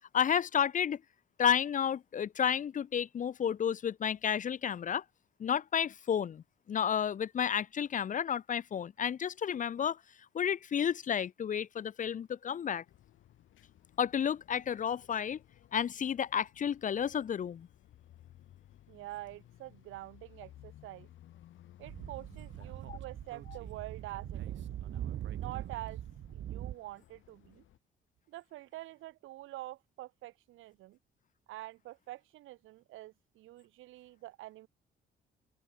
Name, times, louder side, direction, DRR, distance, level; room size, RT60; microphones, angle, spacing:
voice 1, 0.1-1.0 1.4-5.0 5.4-6.4 6.7-10.0 10.3-12.8 14.0-15.4 15.7-17.7 22.9-23.0, left 8 dB, 40° left, 0.5 m, -31 dB
sound 1, 12.9-27.8, left 12 dB, 75° left, 3.5 m, -59 dB
voice 2, 18.9-21.1 21.8-24.6 25.4-26.0 26.3-27.6 28.3-31.0 31.5-34.7, right 17 dB, 90° right, 1.1 m, -46 dB
Speech / Wind, 21.8-26.8, right 12 dB, 70° right, 1.4 m, -41 dB
open air
cardioid pair, 90°, 20 cm